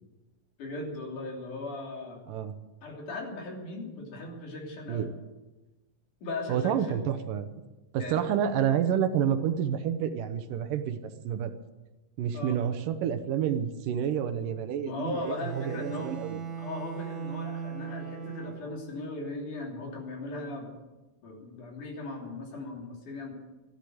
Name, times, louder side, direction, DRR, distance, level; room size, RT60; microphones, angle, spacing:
voice 1, 0.6-2.2 2.8-5.1 6.2-7.0 8.0-8.3 12.3-12.6 14.8-16.1 16.6-20.7 21.2-23.3, left 2 dB, 65° left, 0 dB, 4.7 m, -38 dB
voice 2, 6.5-7.5 7.9-11.0 11.2-11.5 12.2-16.4, right 9 dB, 75° right, 10 dB, 2.5 m, -29 dB
Bowed string instrument, 15.1-18.9, right 7 dB, 45° right, 1.9 m, -39 dB
15.0 x 11.5 x 7.8 m, 1.1 s
omnidirectional pair, 3.9 m